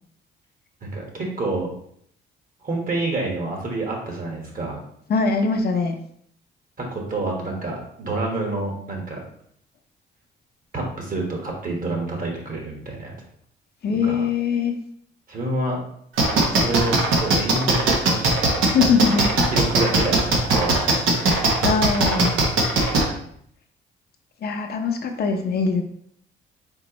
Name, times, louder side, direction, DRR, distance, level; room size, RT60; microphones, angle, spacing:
voice 1, 0.8-1.7 2.6-4.8 6.8-9.2 10.7-13.1 14.0-14.2 15.3-15.8 16.5-18.4 18.8-19.2 19.5-20.9, right 2 dB, 45° right, 0 dB, 1.5 m, -28 dB
voice 2, 5.1-6.0 13.8-14.7 18.7-19.4 21.5-22.4 24.4-25.8, left 5 dB, 55° left, 4 dB, 0.7 m, -22 dB
sound 1, 16.2-23.0, right 3 dB, 80° right, 1.1 m, -18 dB
4.4 x 4.0 x 3.0 m, 0.67 s
cardioid pair, 90°, 20 cm